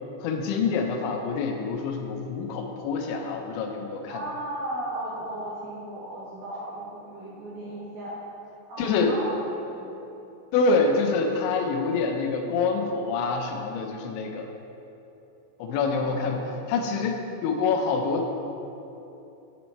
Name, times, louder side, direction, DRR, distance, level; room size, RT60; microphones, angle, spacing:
voice 1, 0.2-4.2 8.8-9.2 10.5-14.5 15.6-16.4 16.7-18.3, left 4 dB, 85° left, 3 dB, 3.0 m, -26 dB
voice 2, 4.1-8.2 8.7-9.9 15.6-16.3, right 1 dB, 60° right, -9 dB, 2.3 m, -36 dB
8.1 x 7.6 x 4.2 m, 2.9 s
omnidirectional pair, 5.3 m